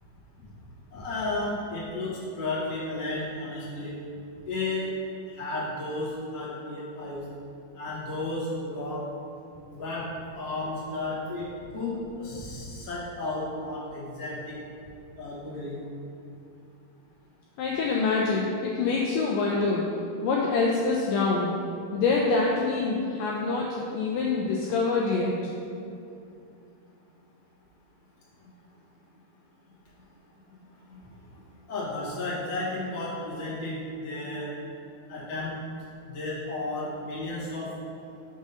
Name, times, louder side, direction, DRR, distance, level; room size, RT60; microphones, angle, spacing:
voice 1, 0.9-4.0 4.5-4.9 5.3-7.2 7.8-9.1 9.7-10.1 10.3-11.5 11.7-14.6 15.2-15.7 30.9-31.0 31.7-34.5 35.1-35.6 36.0-37.7, left 2 dB, 55° left, -8 dB, 0.9 m, -33 dB
voice 2, 17.6-19.9 20.2-21.5 21.9-25.4, left 4 dB, 85° left, -2 dB, 1.9 m, -25 dB
6.1 x 3.6 x 5.5 m, 2.6 s
omnidirectional pair, 4.4 m